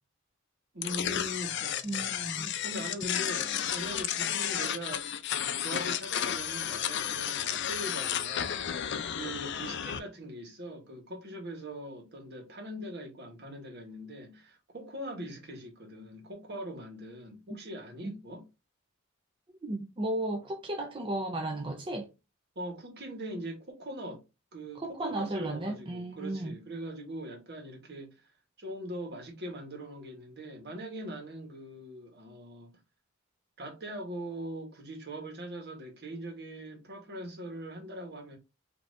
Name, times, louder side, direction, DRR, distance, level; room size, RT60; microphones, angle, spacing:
voice 1, 0.7-2.1 2.6-5.1 5.6-8.8 9.1-18.5 22.5-24.2 24.5-28.3 28.6-32.8 33.6-38.4, right 1 dB, 55° right, 1.4 m, -41 dB
sound 1, 0.8-10.0, left 9 dB, 55° left, 0.4 m, -32 dB
voice 2, 1.8-2.6 18.0-18.1 19.6-22.1 24.8-26.6, right 1 dB, 25° right, 0.5 m, -34 dB
5.2 x 2.8 x 2.6 m
head